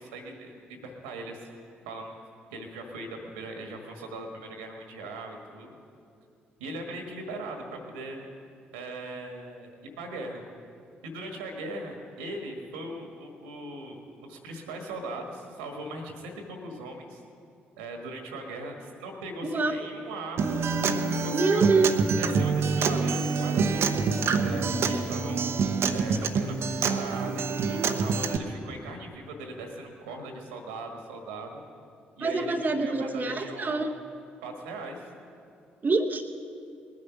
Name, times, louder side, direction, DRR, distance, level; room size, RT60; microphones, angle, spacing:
voice 1, 0.0-1.4 1.8-2.1 2.5-5.7 6.6-8.2 8.7-9.7 10.0-10.4 11.0-14.0 14.2-17.2 17.8-20.6 21.2-21.7 22.2-25.4 25.9-26.6 26.8-31.6 32.2-33.9 34.4-35.1, right 2 dB, 75° right, 3 dB, 1.6 m, -39 dB
voice 2, 19.4-19.7 21.3-21.9 32.2-33.9 35.8-36.2, right 3 dB, 35° right, 4 dB, 0.9 m, -25 dB
Acoustic guitar, 20.4-28.4, right 5 dB, 55° right, 0.8 m, -26 dB
20.0 x 9.5 x 5.9 m, 2.4 s
figure-of-eight pair, 40°, 5 cm